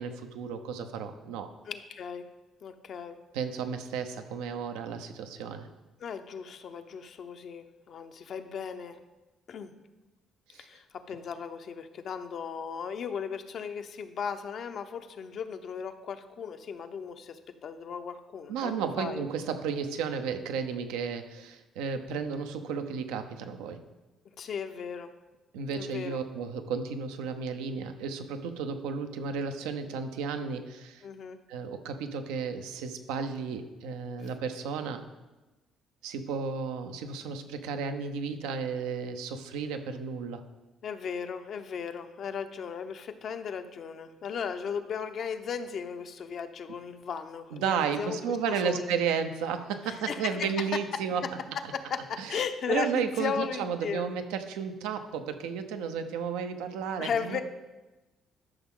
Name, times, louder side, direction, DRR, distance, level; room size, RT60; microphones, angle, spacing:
voice 1, 0.0-1.5 3.3-5.7 10.5-10.7 18.5-23.8 25.5-31.0 31.5-35.0 36.0-40.4 47.5-51.2 52.2-52.4 52.7-57.4, right 6 dB, 90° right, 7 dB, 0.7 m, -33 dB
voice 2, 1.7-2.2 2.6-3.2 6.0-9.0 9.5-9.7 10.6-19.2 24.4-25.1 25.7-26.2 31.0-31.4 40.8-48.2 48.5-49.0 49.9-50.7 51.2-51.3 51.7-54.1 57.0-57.4, left 6 dB, 60° left, 8 dB, 0.8 m, -36 dB
12.5 x 6.0 x 3.8 m, 1.1 s
supercardioid pair, 65°, 0 cm